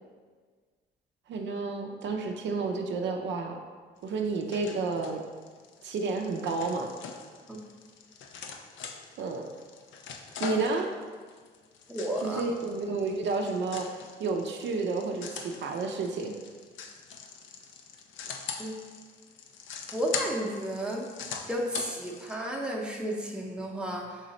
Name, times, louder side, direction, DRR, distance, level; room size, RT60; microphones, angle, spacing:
voice 1, 1.3-3.6 4.0-5.2 5.8-6.9 9.2-9.5 10.4-10.9 12.2-13.9 14.2-16.3, right 4 dB, 65° right, 3 dB, 0.5 m, -31 dB
sound 1, 4.0-22.3, left 6 dB, 75° left, 0.5 m, -42 dB
voice 2, 11.9-12.4 18.6-18.8 19.9-21.1 21.5-24.2, right 1 dB, 5° right, -1 dB, 0.7 m, -32 dB
4.0 x 3.1 x 3.9 m, 1.5 s
cardioid pair, 90°, 20 cm